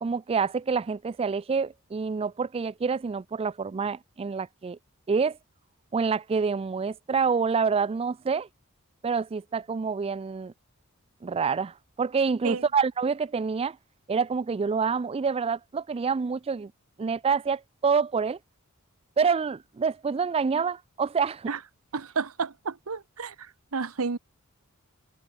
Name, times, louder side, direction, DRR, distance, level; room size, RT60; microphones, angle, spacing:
voice 1, 0.0-4.8 5.1-5.4 5.9-8.5 9.0-10.5 11.2-13.8 14.1-16.7 17.0-18.4 19.2-21.5, right 5 dB, 25° right, 0.3 m, -27 dB
voice 2, 21.9-24.2, right 5 dB, 80° right, 0.9 m, -31 dB
head